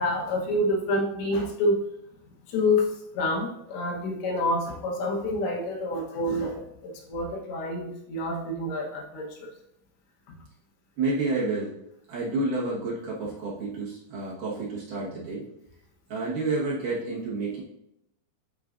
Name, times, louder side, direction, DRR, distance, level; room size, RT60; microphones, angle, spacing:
voice 1, 0.0-1.8 2.5-2.9 3.2-9.3, left 1 dB, 80° left, -1 dB, 3.4 m, -27 dB
voice 2, 11.0-11.8 12.1-15.5 16.1-17.6, right 3 dB, 60° right, -7 dB, 2.5 m, -29 dB
12.0 x 4.5 x 2.6 m, 0.82 s
omnidirectional pair, 5.2 m